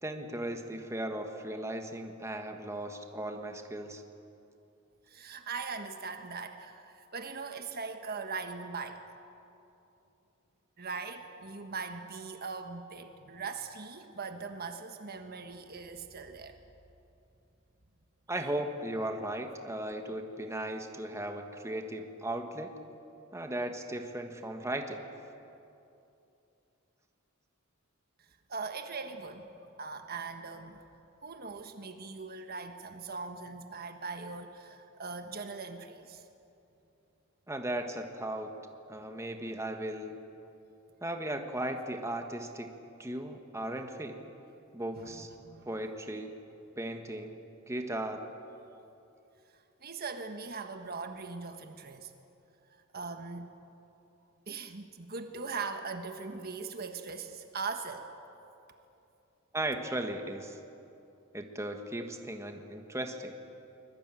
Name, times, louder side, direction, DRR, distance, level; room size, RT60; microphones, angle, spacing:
voice 1, 0.0-4.0 18.3-22.7 23.3-25.1 37.5-38.5 38.9-40.2 41.0-42.7 43.0-44.2 44.7-45.3 45.6-46.3 46.8-47.4 47.7-48.2 59.5-60.6 61.3-63.3, right 1 dB, 15° right, 4 dB, 1.6 m, -36 dB
voice 2, 5.1-9.0 10.8-16.6 28.5-36.2 44.9-45.7 49.8-52.1 52.9-53.5 54.5-58.1, right 4 dB, 45° right, 7 dB, 1.4 m, -40 dB
24.0 x 21.5 x 9.2 m, 2.8 s
head